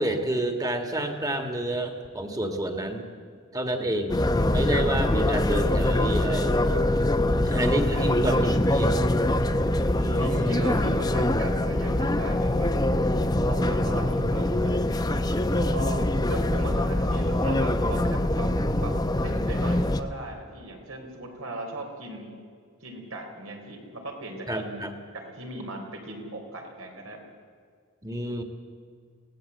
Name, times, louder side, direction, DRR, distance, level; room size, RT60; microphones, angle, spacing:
voice 1, 0.0-3.1 3.5-4.2 4.5-6.6 7.4-8.4 8.7-9.0 9.9-10.8 24.5-24.9 28.0-28.4, right 1 dB, 15° right, 5 dB, 1.8 m, -29 dB
sound 1, 4.1-20.0, left 1 dB, 20° left, 0.8 m, -24 dB
voice 2, 7.2-8.7 10.2-12.7 13.4-15.1 15.6-18.5 18.8-22.3 22.8-24.8 25.1-27.2, right 1 dB, 75° right, 3 dB, 3.8 m, -38 dB
23.0 x 17.5 x 8.0 m, 2.1 s
head